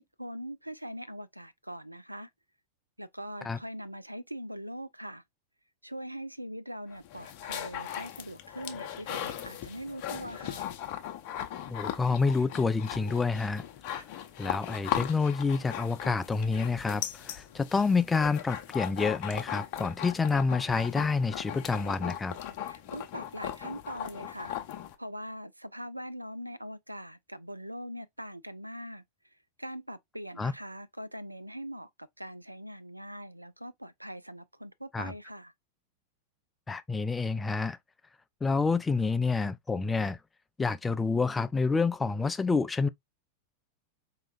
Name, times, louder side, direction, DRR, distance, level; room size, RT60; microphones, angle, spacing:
voice 1, 0.2-2.3 3.0-5.2 5.8-10.7 22.6-24.6 25.0-29.0 29.6-35.5, equal, 85° right, 0.3 m, -42 dB
sound 1, 6.9-24.9, left 11 dB, 45° left, 0.7 m, -38 dB
voice 2, 11.7-13.6 14.1-22.3 30.4-30.5 34.9-35.1 36.7-37.8 38.4-40.2 40.6-42.9, left 4 dB, 10° left, 0.4 m, -28 dB
4.7 x 2.9 x 2.4 m
figure-of-eight pair, 90°, 0 cm